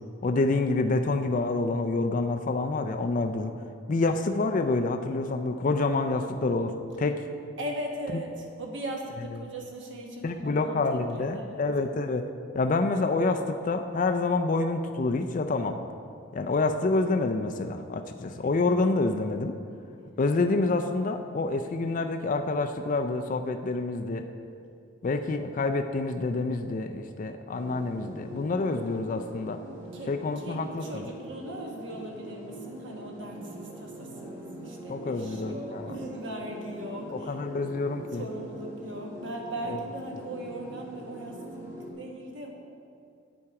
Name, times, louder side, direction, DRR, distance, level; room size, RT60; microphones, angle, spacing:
voice 1, 0.2-3.5 3.9-7.3 10.2-12.3 12.5-15.8 16.3-19.6 20.2-24.3 25.0-29.6 30.1-30.8 34.9-35.9 37.1-38.2, left 3 dB, 40° left, 6 dB, 0.4 m, -27 dB
voice 2, 7.6-11.6 16.4-16.5 29.9-37.4 38.1-42.7, right 1 dB, 60° right, 0 dB, 1.3 m, -39 dB
sound 1, 27.5-41.9, right 1 dB, 15° right, 1.5 m, -43 dB
8.6 x 8.0 x 4.8 m, 2.4 s
head